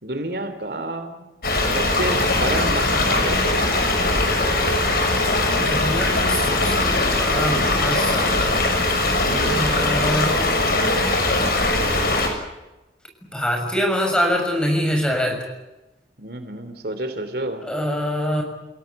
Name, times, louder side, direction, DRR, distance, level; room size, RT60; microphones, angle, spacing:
voice 1, 0.0-1.2 1.7-3.9 9.2-9.6 16.2-17.6, right 1 dB, 60° right, 8 dB, 3.3 m, -29 dB
sound 1, 1.4-12.3, left 2 dB, 55° left, 6.8 m, -20 dB
voice 2, 5.5-8.6 9.4-10.5 13.3-15.4 17.6-18.4, equal, 5° left, 2 dB, 6.7 m, -24 dB
29.5 x 17.0 x 9.4 m, 1.0 s
head